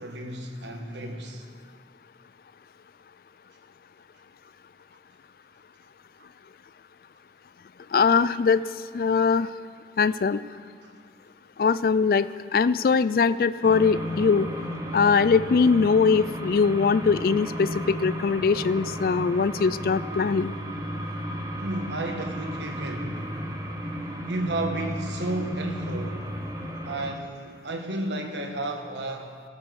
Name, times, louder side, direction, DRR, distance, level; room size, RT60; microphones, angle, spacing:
voice 1, 0.0-1.5 10.8-10.9 21.6-23.4 24.3-26.3 26.8-29.4, right 2 dB, 80° right, 1.4 m, -32 dB
voice 2, 7.9-8.6 8.9-9.5 10.0-10.4 11.6-14.5 14.9-20.5, left 5 dB, 55° left, 0.3 m, -21 dB
sound 1, 13.6-27.1, equal, 20° right, 0.9 m, -34 dB
15.5 x 8.6 x 6.4 m
head